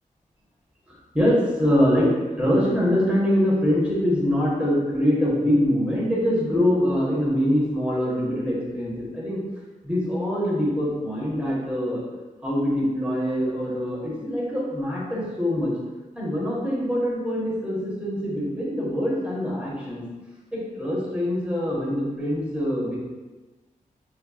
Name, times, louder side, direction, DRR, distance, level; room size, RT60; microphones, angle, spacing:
voice 1, 0.9-2.1 2.4-9.4 9.8-12.0 12.4-15.7 16.1-20.0 20.5-23.0, equal, 10° right, -6 dB, 1.4 m, -24 dB
6.1 x 3.3 x 2.4 m, 1.2 s
wide cardioid pair, 105°, 14 cm